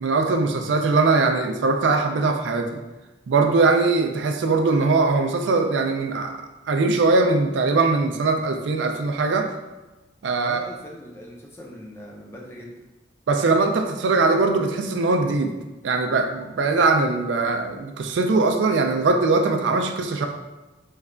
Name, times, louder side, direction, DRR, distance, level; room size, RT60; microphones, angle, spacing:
voice 1, 0.0-2.8 3.3-6.4 6.7-9.6 10.2-10.6 13.3-15.5 15.8-20.3, right 3 dB, 85° right, 5 dB, 0.4 m, -21 dB
voice 2, 10.4-12.8, equal, 15° left, -2 dB, 0.4 m, -40 dB
3.2 x 2.2 x 3.7 m, 1.1 s
head